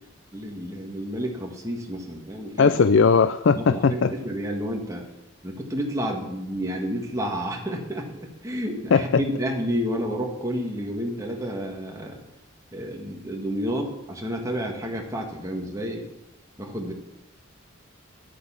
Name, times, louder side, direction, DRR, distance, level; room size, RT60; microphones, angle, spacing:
voice 1, 0.3-2.7 3.5-5.0 5.4-12.2 12.7-16.0 16.6-16.9, equal, 15° right, 1 dB, 1.7 m, -30 dB
voice 2, 2.6-4.1 8.9-9.0, left 5 dB, 60° left, 14 dB, 0.4 m, -18 dB
10.0 x 9.5 x 5.7 m, 0.93 s
head